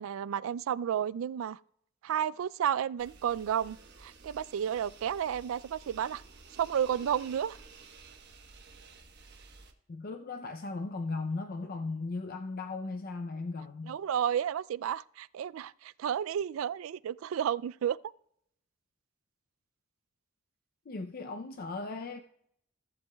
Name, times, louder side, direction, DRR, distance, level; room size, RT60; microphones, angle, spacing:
voice 1, 0.0-1.6 2.0-6.2 6.6-7.6 13.9-18.0, right 9 dB, 75° right, 0.3 m, -32 dB
sound 1, 3.0-9.7, right 4 dB, 55° right, 1.1 m, -53 dB
voice 2, 9.9-14.0 20.9-22.2, left 3 dB, 45° left, 0.5 m, -37 dB
17.0 x 7.6 x 2.3 m
head